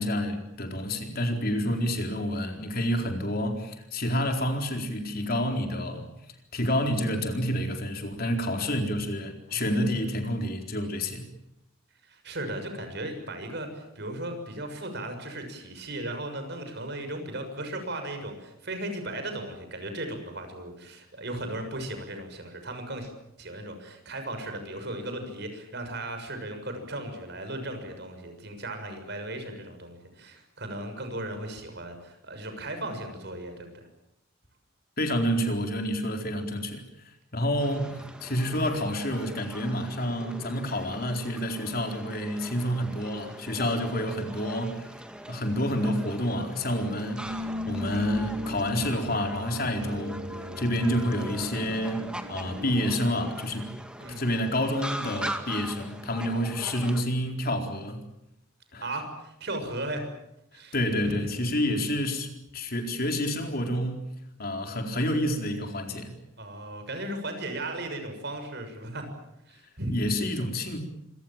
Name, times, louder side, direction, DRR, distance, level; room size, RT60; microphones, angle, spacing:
voice 1, 0.0-6.1 6.5-11.3 35.0-36.8 37.3-44.9 45.3-53.7 54.2-58.1 58.7-58.8 60.7-64.1 64.4-66.1 69.9-70.8, equal, 45° left, 4.2 m, -29 dB
voice 2, 12.0-23.1 23.4-33.9 54.0-54.2 58.8-60.1 60.5-60.8 61.0-61.1 66.4-69.1 69.5-70.0, right 1 dB, 55° right, 6.7 m, -36 dB
sound 1, 37.6-57.0, right 1 dB, 5° right, 2.1 m, -42 dB
sound 2, 47.2-52.9, left 1 dB, 90° right, 2.6 m, -38 dB
27.0 x 25.0 x 7.4 m
head